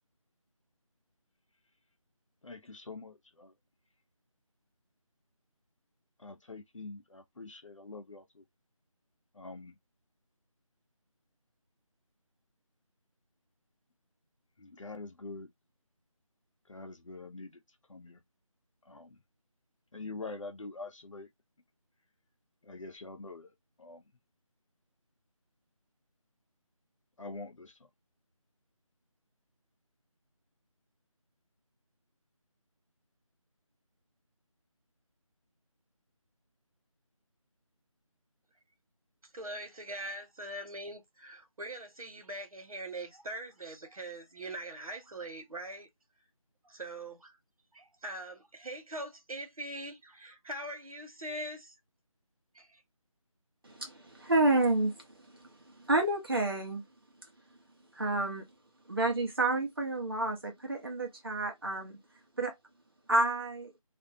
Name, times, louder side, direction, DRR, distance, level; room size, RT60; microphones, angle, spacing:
voice 1, 2.4-3.5 6.2-8.4 9.3-9.8 14.6-15.5 16.7-17.6 17.9-18.2 18.9-19.2 19.9-21.3 22.6-23.5 23.8-24.0 27.2-27.8, left 3 dB, 65° left, 0.8 m, -45 dB
voice 2, 39.3-45.9 46.6-47.4 47.7-51.7 52.5-52.8, right 1 dB, 90° right, 1.2 m, -42 dB
voice 3, 53.6-56.8 57.9-58.5 58.9-62.0 62.4-62.5 63.1-63.7, right 2 dB, 40° right, 0.9 m, -30 dB
2.6 x 2.2 x 2.6 m
figure-of-eight pair, 180°, 18 cm